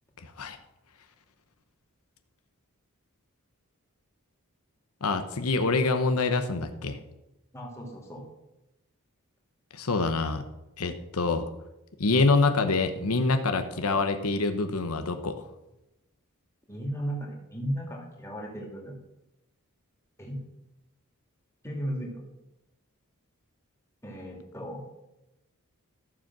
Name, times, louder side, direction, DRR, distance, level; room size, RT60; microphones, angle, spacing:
voice 1, 0.2-0.6 5.0-7.0 9.7-10.4 10.8-11.5 12.0-15.5, left 3 dB, 80° left, 8 dB, 1.0 m, -26 dB
voice 2, 7.5-8.2 16.7-19.0 20.2-20.4 21.6-22.2 24.0-24.8, equal, 10° left, -1 dB, 2.7 m, -35 dB
13.5 x 7.4 x 6.2 m, 0.93 s
head